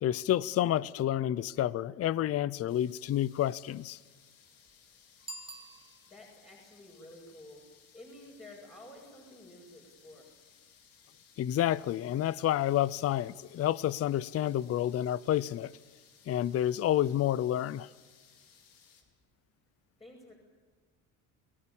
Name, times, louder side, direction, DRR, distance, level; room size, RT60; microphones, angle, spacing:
voice 1, 0.0-4.0 11.4-15.7 16.3-17.9, left 12 dB, 40° left, 0.6 m, -29 dB
sound 1, 2.7-19.0, left 7 dB, 65° left, 4.5 m, -61 dB
Bicycle bell, 5.2-6.4, right 2 dB, 15° right, 2.1 m, -47 dB
voice 2, 6.1-7.6 7.9-10.3 20.0-20.3, left 1 dB, 15° left, 7.8 m, -51 dB
30.0 x 18.5 x 7.2 m
supercardioid pair, 100°, 36 cm